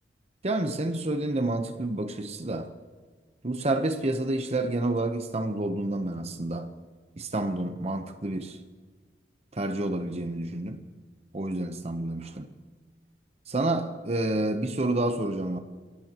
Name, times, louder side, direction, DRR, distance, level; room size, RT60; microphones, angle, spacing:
voice 1, 0.4-2.7 3.4-6.7 7.2-8.6 9.5-10.8 11.3-12.5 13.5-15.6, right 2 dB, 40° right, 0.9 m, -29 dB
27.5 x 17.0 x 3.0 m
head